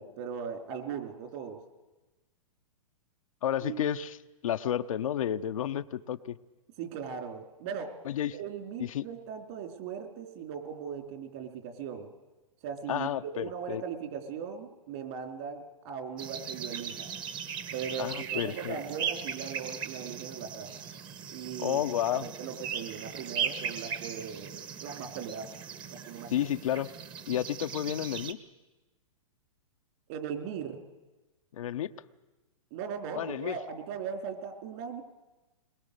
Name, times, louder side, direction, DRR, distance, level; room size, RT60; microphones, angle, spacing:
voice 1, 0.0-1.6 3.6-3.9 6.8-7.9 8.3-12.1 12.6-13.1 13.3-17.1 17.7-20.7 21.3-21.8 22.1-25.5 26.1-26.5 30.1-30.8 32.7-35.0, right 7 dB, 50° right, 5 dB, 3.6 m, -39 dB
voice 2, 3.4-4.2 4.4-6.4 8.0-8.4 8.8-9.1 12.9-13.8 18.0-18.8 21.6-22.3 26.3-26.9 27.3-28.4 31.5-31.9 33.1-33.6, left 10 dB, 70° left, 9 dB, 0.8 m, -31 dB
sound 1, 16.2-28.3, right 7 dB, 25° right, 1.3 m, -38 dB
22.0 x 21.0 x 6.7 m, 1.1 s
hypercardioid pair, 125°, 18 cm